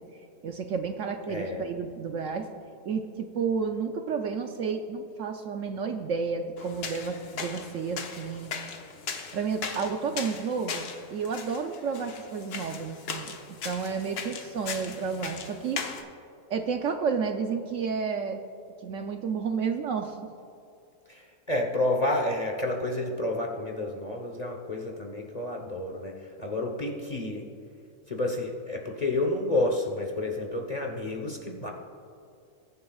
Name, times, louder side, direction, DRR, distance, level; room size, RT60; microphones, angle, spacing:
voice 1, 0.4-2.5 2.8-8.5 9.3-13.4 13.6-15.8 16.5-18.4 18.8-20.2, right 5 dB, 65° right, 5 dB, 0.9 m, -31 dB
voice 2, 1.3-1.6 21.5-26.1 26.4-27.5 28.1-31.7, left 2 dB, 30° left, 1 dB, 0.9 m, -30 dB
Going upstairs, 6.6-16.0, left 5 dB, 85° left, 1.5 m, -38 dB
21.0 x 9.6 x 2.3 m, 2.5 s
omnidirectional pair, 1.6 m